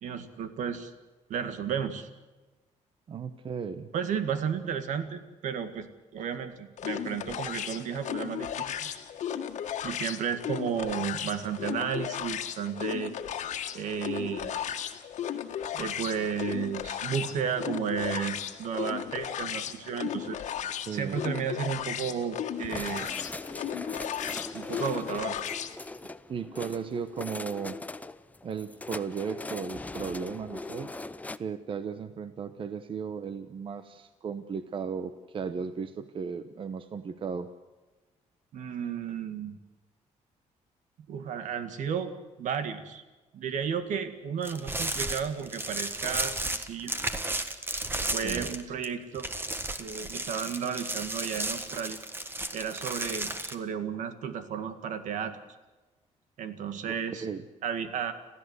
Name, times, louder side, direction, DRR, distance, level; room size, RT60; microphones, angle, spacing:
voice 1, 0.0-0.9 1.3-2.1 3.9-8.9 9.8-13.1 13.7-14.6 15.7-20.4 20.9-23.1 24.5-25.4 38.5-39.6 41.1-42.1 42.4-43.0 43.3-46.9 48.1-49.3 49.8-52.0 52.5-55.4 56.4-57.3 57.6-58.1, right 7 dB, 75° right, 10 dB, 2.0 m, -33 dB
voice 2, 3.1-3.9 20.9-21.2 26.3-27.8 28.4-30.9 31.4-37.5 48.2-48.5 56.9-57.4, right 6 dB, 40° right, 11 dB, 1.0 m, -35 dB
sound 1, 6.8-25.8, left 9 dB, 70° left, 1.6 m, -35 dB
sound 2, 22.6-31.4, left 2 dB, 10° left, 0.6 m, -40 dB
sound 3, 44.4-48.9 49.2-53.6, right 2 dB, 15° right, 1.5 m, -33 dB
26.5 x 15.5 x 8.2 m, 1.2 s
cardioid pair, 125°, 13 cm